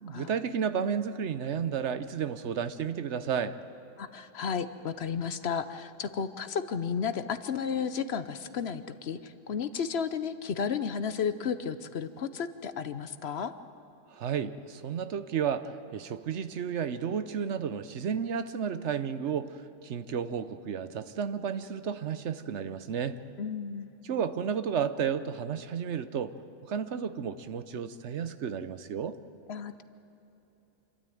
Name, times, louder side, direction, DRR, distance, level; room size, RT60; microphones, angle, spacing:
voice 1, 0.0-3.6 14.1-23.2 24.0-26.3 26.6-29.2, right 7 dB, 65° right, 12 dB, 1.0 m, -32 dB
voice 2, 4.0-13.5 23.4-23.9 29.5-29.8, left 6 dB, 60° left, 12 dB, 0.9 m, -33 dB
27.0 x 13.0 x 9.2 m, 2.9 s
omnidirectional pair, 1.3 m